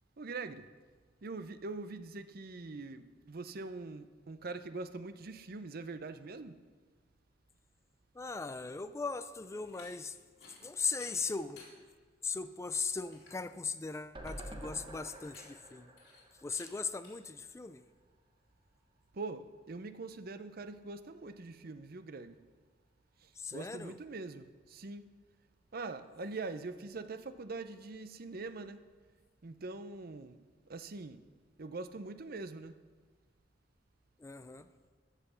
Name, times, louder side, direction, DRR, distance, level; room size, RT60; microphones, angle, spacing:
voice 1, 0.2-0.7 1.2-6.6 19.1-22.4 23.2-25.1 25.7-28.9 29.4-30.4 30.7-31.2 31.6-32.8, right 3 dB, 55° right, 0.6 m, -43 dB
voice 2, 8.1-10.2 10.6-11.7 12.2-15.9 16.4-17.8 23.4-24.0 34.2-34.7, left 4 dB, 15° left, 0.4 m, -38 dB
sound 1, 9.6-9.9 10.3-10.6 10.9-11.7 12.3-12.4 12.8-12.9 13.1-13.4 15.1-15.7 16.0-16.2 16.5-16.7 17.0-17.1, left 4 dB, 65° left, 4.1 m, -57 dB
sound 2, 14.1-17.4 17.7-17.8 18.1-18.2, right 1 dB, 30° right, 1.3 m, -48 dB
15.5 x 5.7 x 6.9 m
head